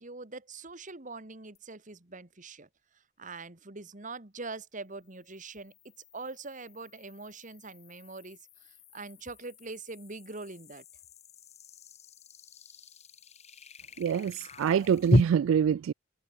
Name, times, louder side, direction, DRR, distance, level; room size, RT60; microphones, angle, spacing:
voice 1, 0.0-2.7 3.2-5.7 6.1-10.8, right 3 dB, 40° right, 2.1 m, -43 dB
sound 1, 1.5-1.6 5.1-15.2, left 1 dB, 35° left, 2.4 m, -36 dB
voice 2, 14.0-15.9, right 8 dB, 85° right, 0.3 m, -26 dB
head